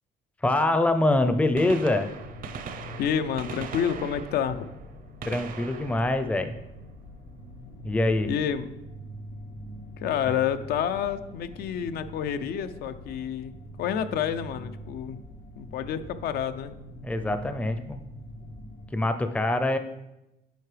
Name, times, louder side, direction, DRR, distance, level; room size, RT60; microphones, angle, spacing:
voice 1, 0.4-2.1 5.2-6.6 7.8-8.3 17.0-18.0 18.9-19.8, left 2 dB, 10° left, 8 dB, 0.5 m, -24 dB
Gunshot gunfire, 1.6-7.3 9.2-9.4 10.4-10.5 12.1-12.2 13.5-13.6 13.8-13.9, right 6 dB, 55° right, 0.7 m, -41 dB
sound 1, 2.0-18.9, equal, 90° left, 1.6 m, -44 dB
voice 2, 3.0-4.7 8.3-8.7 10.0-13.5 13.8-15.2 15.5-16.7, left 8 dB, 70° left, 11 dB, 0.6 m, -29 dB
9.2 x 5.6 x 3.3 m, 0.94 s
cardioid pair, 110°, 17 cm